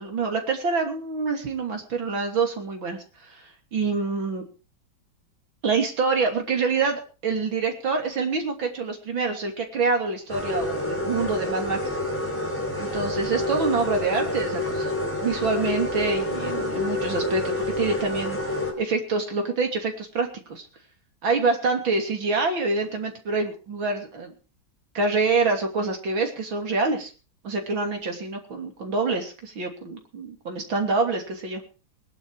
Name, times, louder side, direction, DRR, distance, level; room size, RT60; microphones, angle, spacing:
voice 1, 0.0-3.4 3.7-4.4 5.6-11.8 12.8-14.9 15.2-18.4 18.8-20.7 21.2-24.3 25.0-27.1 27.4-31.6, right 4 dB, 75° right, 4 dB, 3.7 m, -26 dB
sound 1, 10.3-18.7, left 1 dB, 5° left, 4.0 m, -28 dB
19.5 x 12.0 x 4.8 m, 0.36 s
omnidirectional pair, 2.2 m